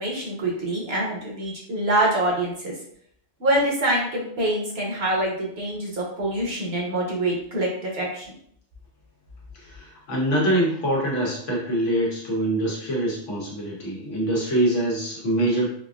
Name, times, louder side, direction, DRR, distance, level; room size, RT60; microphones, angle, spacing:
voice 1, 0.0-2.7 3.4-8.3, right 1 dB, 60° right, -2 dB, 1.1 m, -25 dB
voice 2, 9.6-15.7, right 1 dB, 85° left, -3 dB, 1.4 m, -24 dB
3.9 x 2.6 x 2.3 m, 0.67 s
omnidirectional pair, 1.2 m